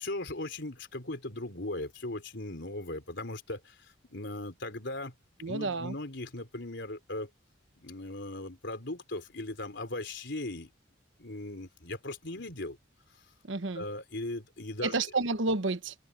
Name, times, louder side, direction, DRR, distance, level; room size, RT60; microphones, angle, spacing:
voice 1, 0.0-5.1 5.5-7.3 7.8-10.7 11.2-12.8 13.7-14.9, left 2 dB, 65° left, 4.5 m, -38 dB
voice 2, 5.4-5.9 13.4-13.8 14.8-15.9, right 3 dB, 75° right, 1.1 m, -30 dB
head